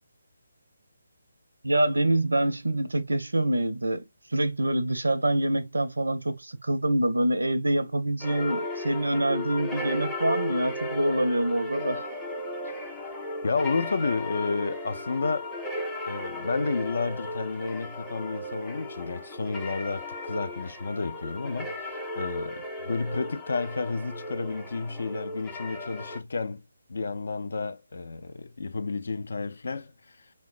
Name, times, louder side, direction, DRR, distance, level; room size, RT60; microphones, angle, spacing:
voice 1, 1.6-4.0 4.3-12.1, right 1 dB, 80° right, 0.5 m, -26 dB
sound 1, 8.2-26.2, left 1 dB, 10° left, 0.6 m, -35 dB
voice 2, 13.4-15.5 16.1-26.6 26.9-29.9, left 4 dB, 60° left, 0.4 m, -31 dB
3.1 x 2.0 x 2.5 m
figure-of-eight pair, 145°, 0 cm